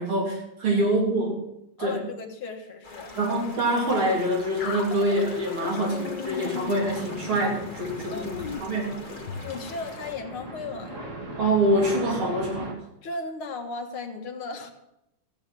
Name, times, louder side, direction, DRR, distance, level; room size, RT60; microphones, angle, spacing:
voice 1, 0.0-1.4 1.8-2.0 3.2-9.2 11.4-12.7, right 1 dB, 75° right, -1 dB, 4.1 m, -25 dB
voice 2, 1.8-3.1 8.1-8.4 9.4-11.0 13.0-14.7, left 3 dB, 75° left, 5 dB, 2.3 m, -36 dB
sound 1, 2.8-10.1, left 3 dB, 25° left, 1.8 m, -43 dB
sound 2, 4.6-9.5, left 6 dB, 60° left, 1.5 m, -37 dB
sound 3, 5.3-12.7, right 1 dB, 35° right, 2.6 m, -40 dB
14.5 x 8.9 x 6.1 m, 0.84 s
omnidirectional pair, 2.4 m